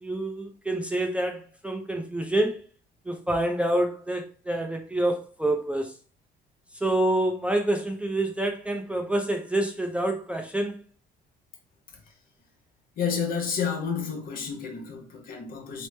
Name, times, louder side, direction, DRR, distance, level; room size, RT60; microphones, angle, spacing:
voice 1, 0.0-2.6 3.1-5.9 6.8-10.8, right 1 dB, 5° right, 0.4 m, -27 dB
voice 2, 13.0-15.9, left 6 dB, 60° left, 0.9 m, -30 dB
3.0 x 2.0 x 3.2 m
cardioid pair, 110°, 17 cm